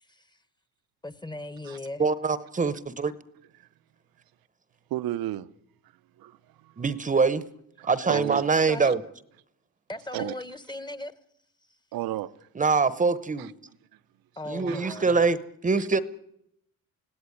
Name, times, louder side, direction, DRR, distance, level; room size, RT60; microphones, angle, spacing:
voice 1, 1.0-2.0 8.1-8.2 8.7-8.9 9.9-11.1 14.4-15.2, left 1 dB, 10° left, 1.0 m, -37 dB
voice 2, 2.0-3.1 6.8-7.4 7.9-9.0 12.6-13.5 14.5-16.0, right 4 dB, 20° right, 0.9 m, -24 dB
voice 3, 4.9-5.5 6.2-6.8 7.8-8.9 10.1-10.3 11.9-12.5 13.4-13.5 14.7-15.0, right 14 dB, 85° right, 0.9 m, -34 dB
26.0 x 17.5 x 9.8 m
cardioid pair, 160°, 35 cm